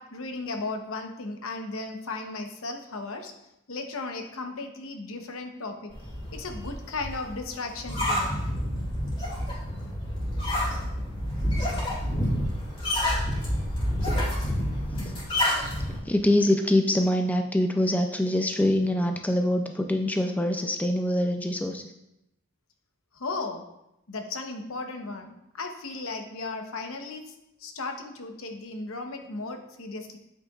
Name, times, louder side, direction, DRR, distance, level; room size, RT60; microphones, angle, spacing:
voice 1, 0.0-3.3 3.7-5.9 6.3-8.2 23.1-23.6 24.1-27.3 27.6-30.2, left 3 dB, 75° left, 5 dB, 0.9 m, -35 dB
sound 1, 5.9-16.0, equal, 25° left, 2.3 m, -28 dB
voice 2, 16.1-21.9, left 1 dB, 5° left, 4 dB, 0.3 m, -24 dB
8.1 x 6.6 x 2.4 m, 0.85 s
head